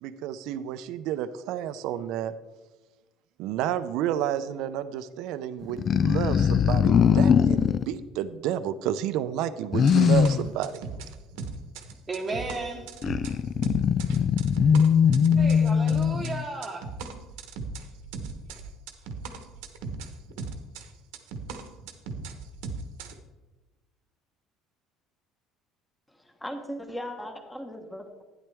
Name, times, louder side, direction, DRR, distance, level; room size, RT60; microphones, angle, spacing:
voice 1, 0.0-2.3 3.4-10.8, right 10 dB, 70° right, 12 dB, 0.5 m, -30 dB
sound 1, 5.6-7.9 9.7-10.5 13.0-16.4, left 7 dB, 40° left, 0.3 m, -21 dB
sound 2, 9.9-16.3 16.6-23.1, right 4 dB, 90° right, 1.2 m, -38 dB
voice 2, 12.1-12.9 15.4-16.9, right 3 dB, 20° right, -1 dB, 1.1 m, -34 dB
voice 3, 26.1-28.2, equal, 10° left, 4 dB, 1.3 m, -38 dB
12.0 x 10.0 x 3.5 m, 1.2 s
cardioid pair, 120°, 0 cm